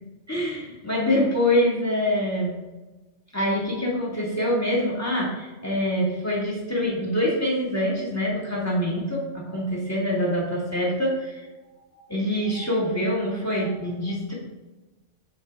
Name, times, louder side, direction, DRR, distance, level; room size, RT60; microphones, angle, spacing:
voice 1, 0.3-2.6 3.3-11.5 11.9-14.3, left 1 dB, 15° left, -4 dB, 1.9 m, -25 dB
7.9 x 3.9 x 3.6 m, 1.1 s
omnidirectional pair, 1.2 m